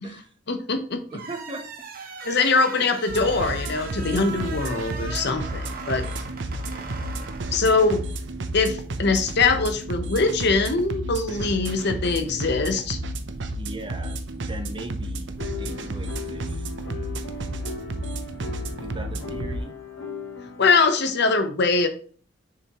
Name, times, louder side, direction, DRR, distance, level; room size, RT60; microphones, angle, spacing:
voice 1, 0.5-1.0 2.2-6.0 7.5-8.0 8.5-13.0 20.6-21.9, left 4 dB, 60° left, 8 dB, 0.9 m, -22 dB
voice 2, 1.1-1.7 2.8-2.9 13.6-15.3 15.6-16.7 18.8-19.7, right 2 dB, 25° right, 6 dB, 0.9 m, -38 dB
sound 1, 1.1-8.1, right 4 dB, 50° right, 1.2 m, -39 dB
sound 2, 3.1-19.6, right 1 dB, 70° right, 0.7 m, -32 dB
sound 3, 15.4-20.8, left 4 dB, 85° left, 1.1 m, -38 dB
6.8 x 5.0 x 3.0 m, 0.42 s
head